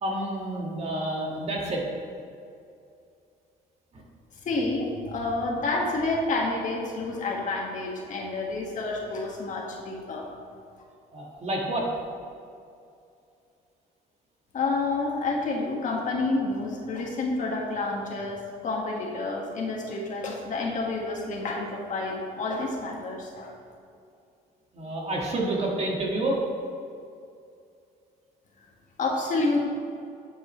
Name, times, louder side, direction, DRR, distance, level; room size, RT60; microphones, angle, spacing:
voice 1, 0.0-1.9 3.9-4.0 11.1-11.9 24.7-26.4, right 1 dB, 40° right, -2 dB, 1.8 m, -29 dB
voice 2, 4.4-10.3 14.5-23.5 29.0-29.6, left 2 dB, 50° left, -1 dB, 1.7 m, -29 dB
9.1 x 7.6 x 3.2 m, 2.5 s
cardioid pair, 110°, 17 cm